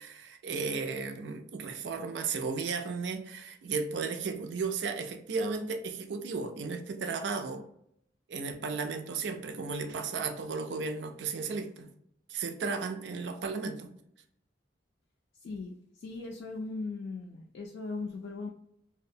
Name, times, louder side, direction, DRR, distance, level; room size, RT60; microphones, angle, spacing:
voice 1, 0.0-7.6 8.3-11.9 12.3-13.9, right 4 dB, 65° right, 6 dB, 0.4 m, -34 dB
voice 2, 15.4-18.5, left 3 dB, 60° left, 0 dB, 0.3 m, -39 dB
2.7 x 2.1 x 2.5 m, 0.72 s
head